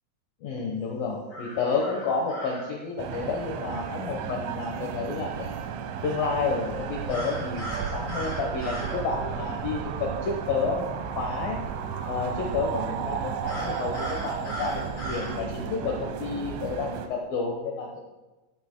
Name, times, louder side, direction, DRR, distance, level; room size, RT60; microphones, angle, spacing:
voice 1, 0.4-5.6 6.0-11.6 12.0-14.8 15.1-18.0, left 4 dB, 80° left, 0 dB, 2.0 m, -30 dB
sound 1, 1.3-2.7 7.1-9.0 13.4-15.3, equal, 35° left, 4.3 m, -37 dB
sound 2, 3.0-17.1, right 7 dB, 80° right, 3.2 m, -33 dB
14.5 x 13.5 x 2.2 m, 1.1 s
omnidirectional pair, 5.8 m